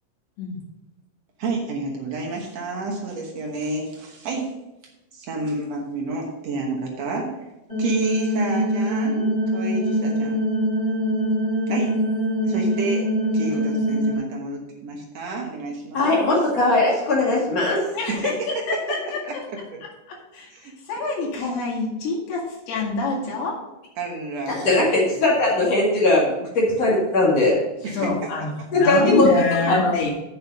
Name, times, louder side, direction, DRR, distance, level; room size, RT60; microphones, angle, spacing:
voice 1, 1.4-4.5 5.1-7.4 7.8-10.4 11.7-12.0 12.4-13.1 13.3-16.3 18.1-18.5 19.2-19.3 20.5-20.8 24.0-25.2 27.8-28.1, right 3 dB, 75° right, 0 dB, 1.5 m, -30 dB
sound 1, 7.7-14.2, equal, 15° left, 2.9 m, -23 dB
voice 2, 15.9-17.8 24.5-27.5 28.7-29.3 29.7-30.1, left 2 dB, 45° left, -4 dB, 2.6 m, -19 dB
voice 3, 17.9-19.2 19.8-23.6 27.9-30.1, left 3 dB, 70° left, -4 dB, 4.2 m, -27 dB
7.8 x 6.9 x 5.3 m, 0.96 s
omnidirectional pair, 4.8 m